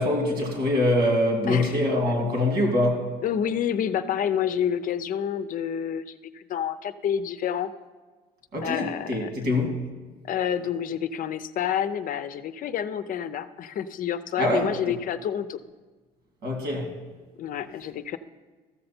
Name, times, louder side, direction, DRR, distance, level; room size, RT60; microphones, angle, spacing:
voice 1, 0.0-3.1 8.5-9.8 14.4-14.7 16.4-16.9, left 1 dB, 75° right, 2.5 m, -24 dB
voice 2, 1.5-1.8 3.2-7.7 8.6-9.3 10.2-15.6 17.4-18.2, left 9 dB, 55° left, 0.5 m, -28 dB
14.0 x 6.6 x 4.3 m
cardioid pair, 110°, 17 cm